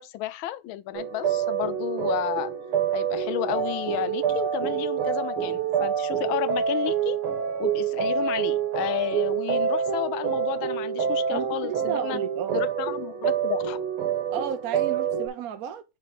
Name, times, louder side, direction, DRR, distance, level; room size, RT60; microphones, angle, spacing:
voice 1, 0.0-2.5 2.9-7.2 7.6-12.2 12.5-13.8, left 14 dB, 80° left, 1.3 m, -32 dB
sound 1, 0.9-15.3, right 8 dB, 85° right, 2.3 m, -27 dB
voice 2, 11.3-12.7 14.3-15.8, right 8 dB, 65° right, 0.9 m, -33 dB
5.9 x 3.4 x 5.8 m
omnidirectional pair, 2.3 m